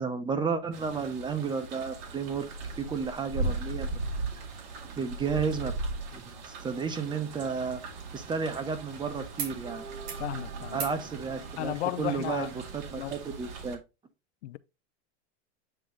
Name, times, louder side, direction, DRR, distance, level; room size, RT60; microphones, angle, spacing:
voice 1, 0.0-2.5 2.8-3.9 4.8-5.7 6.1-7.8 8.1-9.8 10.7-13.8, right 5 dB, 15° right, 0.7 m, -32 dB
sound 1, 0.7-13.8, right 3 dB, 50° right, 2.1 m, -38 dB
sound 2, 9.4-9.6 9.9-10.3 10.7-11.0 12.4-12.5, right 6 dB, 70° right, 2.8 m, -41 dB
voice 2, 10.2-10.8 11.6-12.5 13.0-13.2 14.4-14.6, left 15 dB, 75° left, 0.6 m, -34 dB
8.8 x 3.0 x 3.9 m
supercardioid pair, 135°, 35 cm